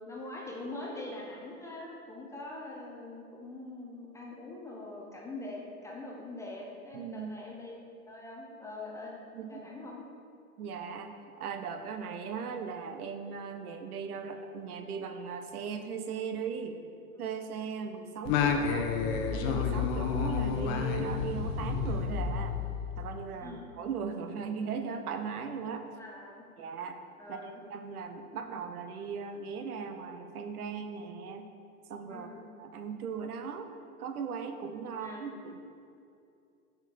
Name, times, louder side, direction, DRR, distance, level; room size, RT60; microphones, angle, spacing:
voice 1, 0.1-7.7 8.1-9.1 9.4-10.0 23.4-23.7 26.0-26.4 27.2-27.6 32.1-32.4 34.9-35.2, left 2 dB, 5° left, -3 dB, 0.5 m, -43 dB
voice 2, 6.9-7.3 9.3-9.6 10.6-16.8 17.2-18.9 19.3-22.6 23.0-25.8 26.6-27.0 27.3-31.5 31.9-32.3 32.6-33.7 34.0-35.6, right 6 dB, 75° right, 6 dB, 0.8 m, -38 dB
Singing, 18.2-23.0, left 6 dB, 40° left, 0.7 m, -30 dB
5.9 x 4.4 x 5.2 m, 2.5 s
hypercardioid pair, 115°, 45 cm